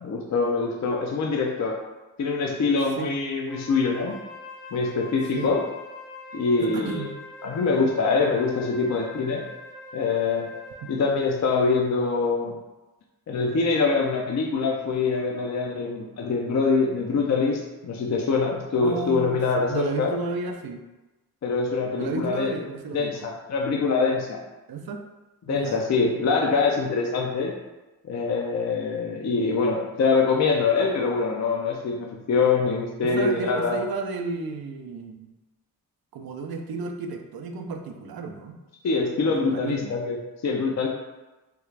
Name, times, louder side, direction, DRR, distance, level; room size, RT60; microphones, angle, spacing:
voice 1, 0.0-1.8 2.2-4.2 4.7-5.6 6.3-7.1 7.4-9.4 9.9-10.5 10.9-12.6 13.3-20.1 21.4-22.5 22.9-24.4 25.5-27.5 28.0-33.8 38.8-40.2 40.4-40.9, left 4 dB, 50° left, 0 dB, 0.5 m, -24 dB
Wind instrument woodwind instrument, 3.5-11.1, left 1 dB, 10° left, 0.7 m, -43 dB
voice 2, 6.6-7.1 10.8-10.9 18.8-20.8 22.0-23.3 24.7-25.0 25.5-25.8 33.0-35.3 36.1-38.6 39.3-39.9 40.8-40.9, right 4 dB, 80° right, 5 dB, 0.5 m, -33 dB
3.5 x 2.4 x 3.2 m, 1.1 s
cardioid pair, 60°, 36 cm